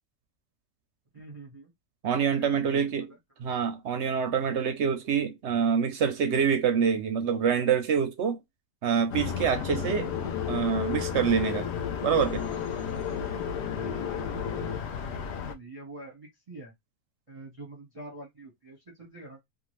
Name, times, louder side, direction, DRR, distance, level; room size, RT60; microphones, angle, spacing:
voice 1, 1.1-1.7 2.3-2.9 13.2-16.7 17.3-19.4, right 2 dB, 30° right, 0.7 m, -46 dB
voice 2, 2.0-3.1 3.4-8.4 8.8-10.1 10.4-11.7 12.0-12.4, right 7 dB, 65° right, 0.7 m, -26 dB
sound 1, 9.1-15.5, left 7 dB, 70° left, 0.6 m, -35 dB
sound 2, 9.7-14.8, left 9 dB, 85° left, 1.3 m, -34 dB
2.7 x 2.4 x 3.0 m
omnidirectional pair, 1.6 m